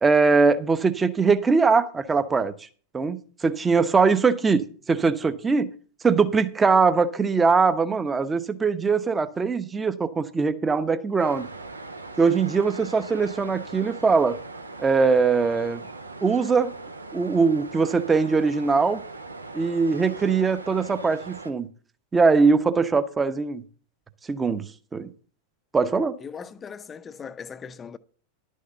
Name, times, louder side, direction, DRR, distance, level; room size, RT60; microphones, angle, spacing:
voice 1, 0.0-2.5 2.9-5.7 6.0-11.5 12.2-14.4 14.8-15.8 16.2-16.8 17.1-19.0 19.5-21.7 22.1-23.6 24.3-25.1 25.7-26.2, right 4 dB, 15° right, 0.9 m, -21 dB
sound 1, 11.2-21.5, right 3 dB, 80° right, 1.2 m, -40 dB
voice 2, 26.2-28.0, left 6 dB, 20° left, 0.6 m, -39 dB
11.5 x 6.6 x 6.6 m
figure-of-eight pair, 90°, 0 cm